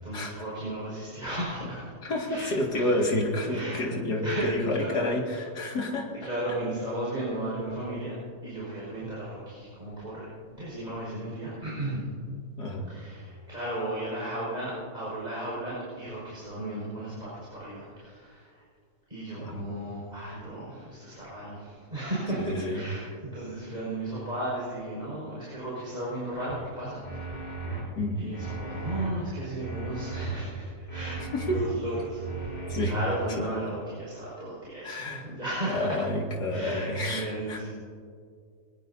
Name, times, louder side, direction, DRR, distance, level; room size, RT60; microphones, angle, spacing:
voice 1, 0.0-1.9 2.3-2.9 3.5-3.8 4.2-5.4 6.2-12.1 12.9-18.6 19.1-27.6 28.2-36.0 36.5-37.7, right 1 dB, 25° right, -8 dB, 5.7 m, -35 dB
voice 2, 2.0-6.1 12.6-12.9 19.4-19.6 22.4-22.8 28.0-28.3 31.3-31.6 32.7-33.0 34.8-35.2 35.7-37.6, left 1 dB, 75° left, -1 dB, 2.9 m, -29 dB
sound 1, 26.5-26.6 27.0-27.8 28.3-29.1 29.6-30.4 30.9-31.7 32.2-33.0, right 4 dB, 35° left, 5.0 m, -35 dB
22.5 x 19.5 x 2.8 m, 2.2 s
omnidirectional pair, 1.8 m